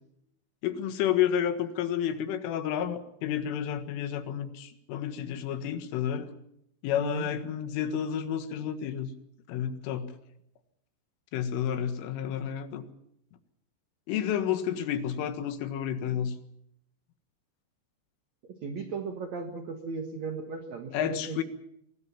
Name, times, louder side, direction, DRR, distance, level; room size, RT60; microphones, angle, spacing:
voice 1, 0.6-6.3 6.8-9.1 9.5-10.2 11.3-12.8 14.1-16.3 20.9-21.4, left 9 dB, 90° left, 9 dB, 4.2 m, -30 dB
voice 2, 18.5-21.4, right 5 dB, 60° right, 6 dB, 1.9 m, -36 dB
24.5 x 18.5 x 7.2 m, 0.76 s
omnidirectional pair, 5.5 m